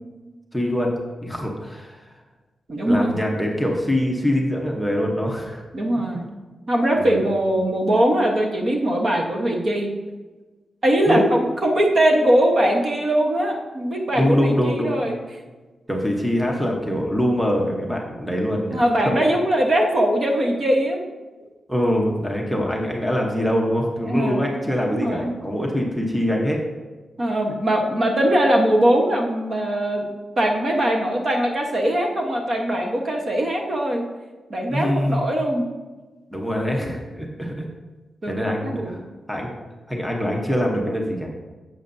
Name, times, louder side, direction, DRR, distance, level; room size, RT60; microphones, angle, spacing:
voice 1, 0.5-2.1 2.8-5.6 6.1-6.2 7.0-7.2 11.1-11.3 14.1-15.0 15.9-19.1 21.4-26.6 34.7-35.3 36.3-37.7 38.3-39.0 39.3-39.5 39.9-41.3, equal, ahead, -1 dB, 0.9 m, -24 dB
voice 2, 2.7-3.2 5.7-6.3 6.7-9.9 10.8-15.2 18.7-21.0 24.1-24.6 24.9-25.3 27.2-30.1 30.4-34.1 34.5-35.7 36.8-36.9 38.2-38.3 38.6-38.9, right 1 dB, 40° right, 1 dB, 1.0 m, -21 dB
11.0 x 7.6 x 2.6 m, 1.2 s
wide cardioid pair, 180°, 0 cm